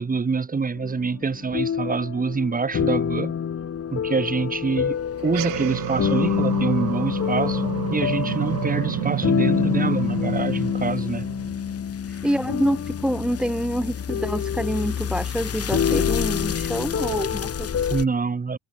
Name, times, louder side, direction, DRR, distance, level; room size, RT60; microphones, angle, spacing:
voice 1, 0.0-3.3 3.9-5.0 5.2-11.3 17.9-18.6, right 4 dB, 25° right, 2.0 m, -26 dB
sound 1, 0.8-18.0, left 8 dB, 45° left, 3.3 m, -26 dB
sound 2, 5.2-11.9, right 19 dB, 70° right, 2.3 m, -30 dB
voice 2, 12.2-17.9, equal, 5° right, 0.7 m, -26 dB
hypercardioid pair, 60°, 34 cm